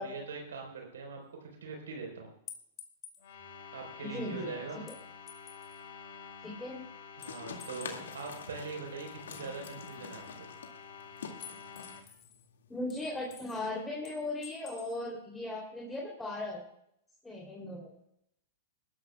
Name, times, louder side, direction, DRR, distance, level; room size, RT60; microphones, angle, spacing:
voice 1, 0.0-2.3 3.7-4.8 7.2-10.5, right 4 dB, 90° right, 2 dB, 4.3 m, -42 dB
sound 1, 2.5-3.2 4.9-5.8 7.2-8.4 9.3-10.3 11.4-12.4 12.9-13.7 14.0-15.0, left 7 dB, 30° left, 2.5 m, -51 dB
sound 2, 3.2-12.0, left 6 dB, 70° left, 2.9 m, -49 dB
voice 2, 4.0-4.5 4.9-5.0 6.4-6.8 12.7-16.6 17.2-17.9, left 2 dB, 10° left, -1 dB, 3.1 m, -38 dB
sound 3, 7.2-13.6, left 6 dB, 90° left, 2.2 m, -47 dB
21.5 x 13.0 x 2.3 m, 0.74 s
hypercardioid pair, 130°, 0 cm